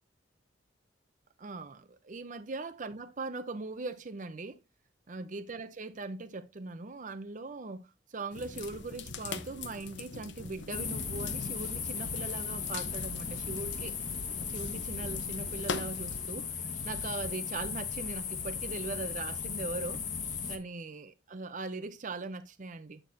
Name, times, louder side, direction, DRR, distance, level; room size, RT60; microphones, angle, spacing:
voice 1, 1.4-4.6 5.1-14.0 14.5-20.0 20.5-23.0, right 3 dB, 45° right, 0.7 m, -40 dB
sound 1, 8.3-16.4, left 4 dB, 75° left, 1.1 m, -43 dB
sound 2, 10.7-20.6, left 6 dB, 45° left, 1.4 m, -36 dB
9.3 x 6.8 x 2.7 m
head